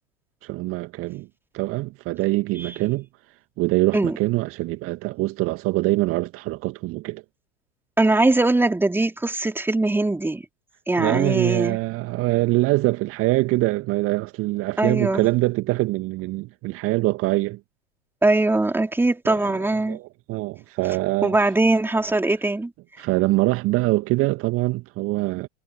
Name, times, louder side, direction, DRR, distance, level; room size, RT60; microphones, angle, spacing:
voice 1, 0.4-1.3 1.5-3.1 3.6-7.2 11.0-17.6 19.3-19.6 19.9-21.4 23.0-25.5, right 20 dB, 40° right, 2.0 m, -24 dB
voice 2, 8.0-10.4 10.9-11.8 14.8-15.3 18.2-20.0 21.2-22.7, right 2 dB, 5° right, 3.7 m, -21 dB
figure-of-eight pair, 85°, 34 cm